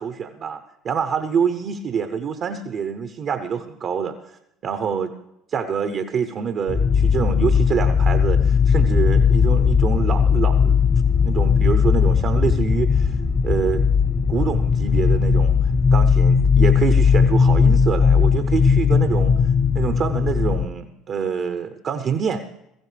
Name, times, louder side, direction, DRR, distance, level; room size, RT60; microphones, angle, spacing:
voice 1, 0.0-5.1 5.5-10.9 11.2-13.2 13.4-13.8 14.3-15.6 15.9-19.4 19.7-22.4, right 6 dB, 50° right, 8 dB, 0.8 m, -26 dB
sound 1, 6.7-20.7, left 6 dB, 30° left, 0.7 m, -17 dB
17.0 x 14.5 x 3.3 m, 0.83 s
hypercardioid pair, 70°, 0 cm